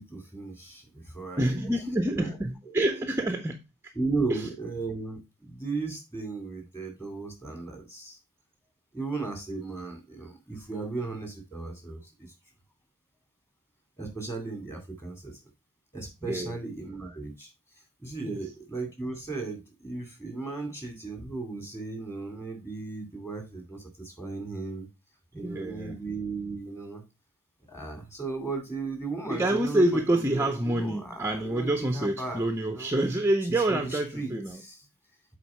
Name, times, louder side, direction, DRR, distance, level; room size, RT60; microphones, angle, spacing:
voice 1, 0.0-1.5 2.1-2.4 2.7-2.8 4.0-8.2 8.9-12.3 14.0-15.4 15.9-17.5 18.0-24.9 25.3-27.0 27.7-31.7 31.9-32.4 32.7-32.9 33.7-34.3 34.6-34.8, right 3 dB, 10° left, 2.3 m, -36 dB
voice 2, 1.4-3.9 4.3-4.5 16.2-16.6 18.2-18.5 25.3-26.0 29.3-34.6, right 1 dB, 10° right, 0.5 m, -27 dB
7.5 x 4.3 x 4.2 m
head